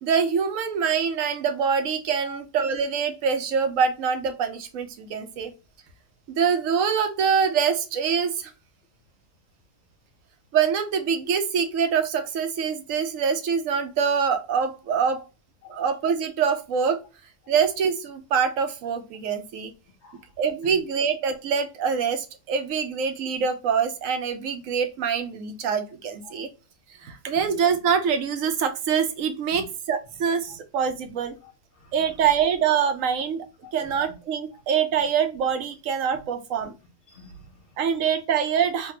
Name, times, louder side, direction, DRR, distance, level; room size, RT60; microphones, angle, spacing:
voice 1, 0.0-5.5 6.3-8.5 10.5-15.2 15.7-17.0 17.5-19.7 20.4-26.5 27.0-31.4 31.9-33.5 33.7-36.7 37.8-38.9, right 7 dB, 70° right, 1.0 m, -25 dB
voice 2, 20.0-20.8 26.2-26.4 27.0-27.6 29.4-29.6 30.5-30.6 31.4-32.3 33.6-34.1 34.5-34.6 34.9-35.0 36.1-36.2 37.1-38.1, left 3 dB, 55° left, 1.0 m, -48 dB
3.3 x 2.3 x 2.8 m
omnidirectional pair, 1.6 m